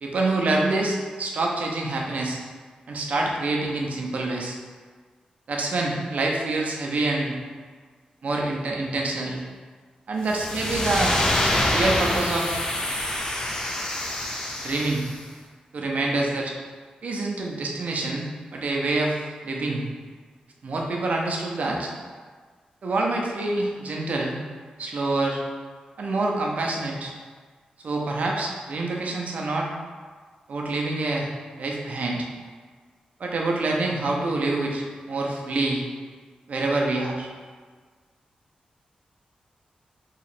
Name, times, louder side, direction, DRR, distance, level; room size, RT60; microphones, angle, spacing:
voice 1, 0.0-2.4 2.9-4.6 5.5-7.4 8.2-9.4 10.1-11.2 11.7-12.7 14.6-15.0 15.7-16.5 17.0-19.2 19.4-19.8 20.6-21.9 22.8-24.4 24.8-25.4 26.0-27.1 27.8-29.7 30.5-31.3 31.6-32.3 33.2-35.8 36.5-37.3, right 2 dB, 65° right, -1 dB, 0.6 m, -26 dB
sound 1, 10.2-15.2, left 1 dB, 25° left, 0.6 m, -26 dB
2.9 x 2.4 x 4.2 m, 1.5 s
cardioid pair, 80°, 3 cm